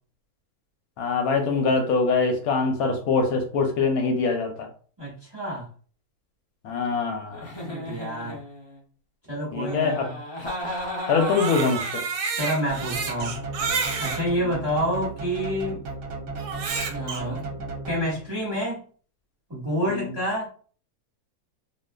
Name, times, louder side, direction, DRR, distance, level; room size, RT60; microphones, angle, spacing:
voice 1, 1.0-4.7 6.6-7.5 9.5-10.0 11.1-12.0 19.9-20.1, left 4 dB, 75° left, 3 dB, 1.0 m, -24 dB
voice 2, 5.0-5.7 7.7-8.4 9.3-10.1 12.4-13.4 14.0-15.8 16.9-18.8 19.5-20.5, equal, 15° right, -7 dB, 1.1 m, -28 dB
Giggle, 7.3-8.8 9.6-11.9, left 1 dB, 40° left, 0.4 m, -34 dB
Crying sobbing, 11.1-14.2 15.0-15.1 16.4-17.2, right 5 dB, 85° right, 1.1 m, -30 dB
sound 1, 12.7-18.4, right 3 dB, 65° right, 0.8 m, -35 dB
2.6 x 2.4 x 2.2 m, 0.43 s
omnidirectional pair, 1.7 m